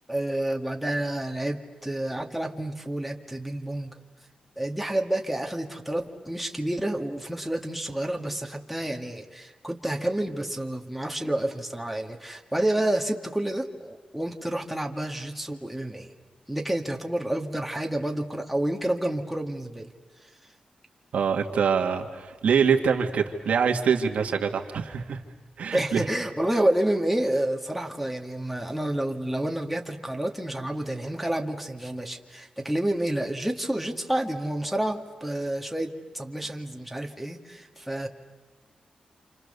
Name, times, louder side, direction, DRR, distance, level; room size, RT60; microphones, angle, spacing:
voice 1, 0.1-4.0 4.6-16.1 16.5-19.9 25.7-38.1, right 1 dB, ahead, 2 dB, 1.9 m, -29 dB
voice 2, 21.1-25.2 25.6-26.1, right 6 dB, 85° right, 3 dB, 2.0 m, -24 dB
28.5 x 27.5 x 6.9 m, 1.3 s
wide cardioid pair, 100°, 2 cm